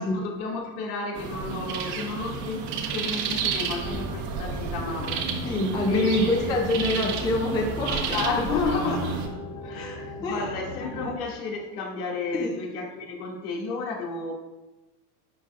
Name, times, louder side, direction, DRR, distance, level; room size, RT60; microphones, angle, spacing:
voice 1, 0.0-5.3 5.6-6.6 8.1-9.3 9.6-14.3, left 4 dB, 75° left, -1 dB, 2.4 m, -32 dB
sound 1, 1.1-9.3, right 6 dB, 40° right, 1.3 m, -31 dB
sound 2, 3.7-11.2, left 2 dB, 35° left, 1.7 m, -38 dB
voice 2, 5.4-8.2 8.5-8.6 8.9-9.0 9.7-10.5 11.0-11.1 12.3-12.5, left 2 dB, 10° left, 2 dB, 0.5 m, -26 dB
11.0 x 9.1 x 2.5 m, 1.1 s
supercardioid pair, 160°, 46 cm